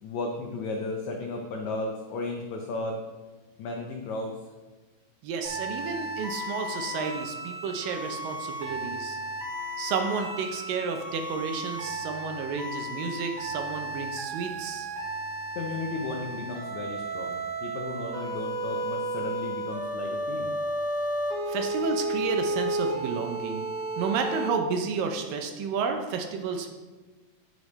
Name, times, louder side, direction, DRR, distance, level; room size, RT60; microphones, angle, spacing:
voice 1, 0.0-3.0 3.6-4.4 15.5-20.6, left 3 dB, 85° left, 1 dB, 1.6 m, -34 dB
voice 2, 5.2-9.2 9.8-14.9 21.5-23.7 24.0-26.7, right 5 dB, 80° right, 5 dB, 2.3 m, -31 dB
sound 1, 5.4-24.5, right 1 dB, 55° right, 1.8 m, -33 dB
9.4 x 6.6 x 3.2 m, 1.3 s
omnidirectional pair, 4.3 m